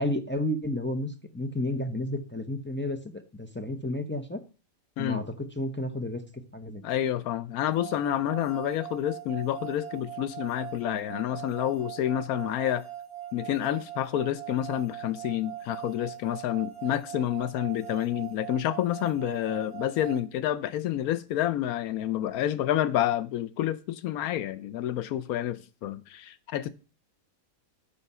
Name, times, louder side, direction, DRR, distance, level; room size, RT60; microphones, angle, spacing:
voice 1, 0.0-4.4 5.0-6.8, left 1 dB, 15° left, 0.3 m, -32 dB
voice 2, 6.8-12.8 13.3-26.7, left 12 dB, 85° left, 1.1 m, -29 dB
sound 1, 7.7-20.2, right 11 dB, 80° right, 1.7 m, -41 dB
7.0 x 5.8 x 5.4 m
omnidirectional pair, 1.5 m